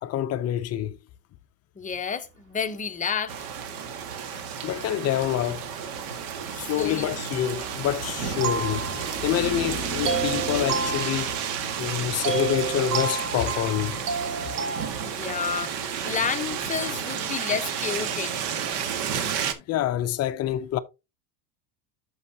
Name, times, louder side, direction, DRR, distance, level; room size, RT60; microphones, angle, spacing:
voice 1, 0.0-1.0 4.4-5.7 6.6-11.5 11.8-14.0 19.3-20.8, left 11 dB, 30° left, 0.6 m, -27 dB
voice 2, 1.8-3.5 6.5-7.1 15.1-15.8 16.0-18.3, left 6 dB, 15° left, 0.9 m, -30 dB
sound 1, 3.3-19.5, right 8 dB, 55° right, 1.8 m, -32 dB
Traffic noise roadway noise, 3.8-17.3, right 2 dB, 30° right, 2.5 m, -41 dB
sound 2, 8.4-9.5 10.1-11.8 12.2-14.9, right 4 dB, 80° right, 3.0 m, -30 dB
12.0 x 5.6 x 2.8 m
supercardioid pair, 125°, 49 cm